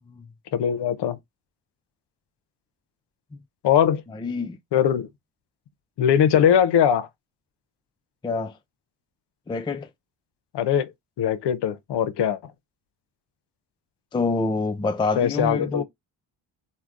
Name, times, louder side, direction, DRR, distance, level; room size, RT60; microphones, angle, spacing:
voice 1, 0.5-1.2 3.6-4.0 4.7-5.1 6.0-7.1 10.5-10.9 11.2-12.4 15.2-15.8, left 9 dB, 55° left, 0.6 m, -21 dB
voice 2, 4.1-4.6 8.2-8.5 9.5-9.9 14.1-15.8, left 3 dB, 10° left, 0.4 m, -26 dB
3.3 x 2.2 x 2.4 m
supercardioid pair, 50°, 50 cm